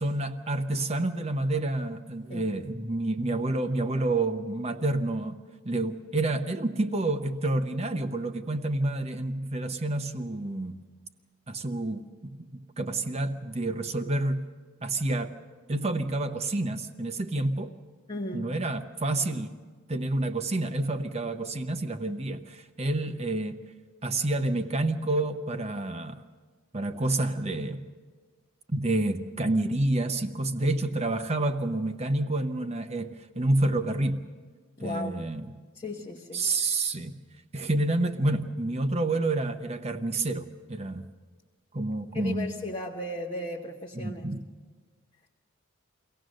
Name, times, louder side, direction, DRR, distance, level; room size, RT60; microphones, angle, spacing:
voice 1, 0.0-5.4 5.6-10.8 11.5-14.4 14.8-15.3 15.7-17.7 18.3-19.6 19.9-23.6 24.0-26.2 26.7-27.8 28.7-34.3 34.8-35.5 36.3-37.2 37.5-41.1 41.7-42.5 43.9-44.4, right 2 dB, 30° right, 0.9 m, -29 dB
voice 2, 18.1-18.6 34.8-35.2 35.7-36.5 42.1-44.3, left 1 dB, 25° left, 1.0 m, -36 dB
24.0 x 17.5 x 6.4 m
head